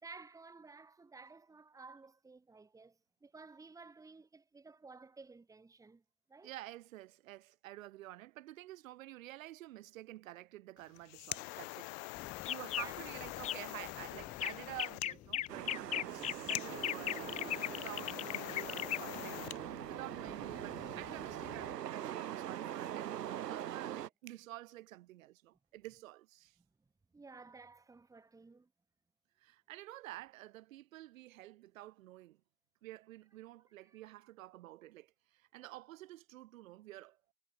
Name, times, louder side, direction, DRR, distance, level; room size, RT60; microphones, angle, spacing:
voice 1, 0.0-6.0 6.3-6.5 12.8-13.0 14.0-14.4 27.1-28.7 33.8-34.0, right 4 dB, 5° right, 4.0 m, -55 dB
voice 2, 6.4-17.4 17.7-19.4 19.9-26.6 29.4-32.4 32.8-37.2, right 16 dB, 55° right, 6.5 m, -50 dB
sound 1, 10.8-19.6, left 36 dB, 40° left, 4.9 m, -45 dB
sound 2, 12.2-21.7, left 12 dB, 15° left, 0.8 m, -40 dB
sound 3, 15.5-24.1, right 11 dB, 85° right, 1.5 m, -43 dB
hypercardioid pair, 145°, 48 cm